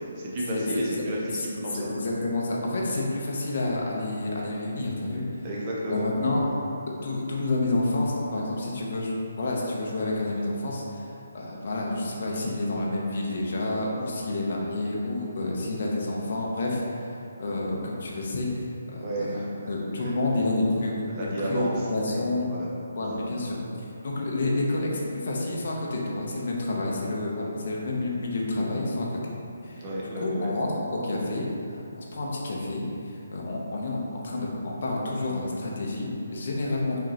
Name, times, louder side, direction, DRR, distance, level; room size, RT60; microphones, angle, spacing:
voice 1, 0.0-1.9 5.4-6.7 19.0-20.2 21.1-22.7 29.8-30.5, right 1 dB, 20° right, -5 dB, 0.6 m, -32 dB
voice 2, 2.0-5.2 5.9-6.4 7.0-19.4 19.7-21.1 21.4-21.6 21.9-22.5 23.0-23.6 24.0-29.2 29.6-37.0, left 2 dB, 50° left, -3 dB, 0.7 m, -29 dB
4.8 x 3.1 x 2.9 m, 2.7 s
hypercardioid pair, 175°, 0 cm